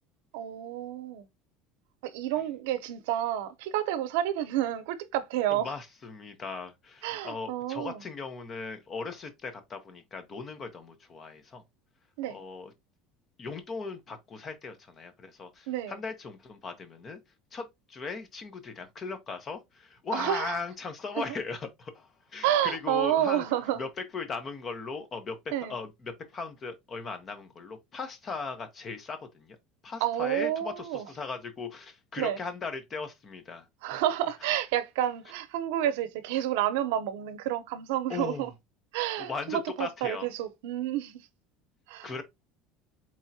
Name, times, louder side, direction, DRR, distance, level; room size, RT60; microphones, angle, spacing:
voice 1, 0.3-1.3 2.0-5.7 7.0-8.0 12.2-12.4 15.7-16.0 20.1-20.6 21.2-21.3 22.4-23.9 25.5-25.8 30.0-31.1 32.2-32.4 33.8-38.5 38.9-41.3 41.9-42.2, right 12 dB, 85° right, 0.7 m, -30 dB
voice 2, 5.5-11.6 12.3-12.7 13.4-17.2 17.5-23.4 23.8-23.9 24.1-25.4 25.7-29.6 29.8-33.7 38.1-38.5 39.2-40.3 42.0-42.2, left 4 dB, 25° left, 0.9 m, -38 dB
4.4 x 3.5 x 2.7 m
cardioid pair, 160°, 0 cm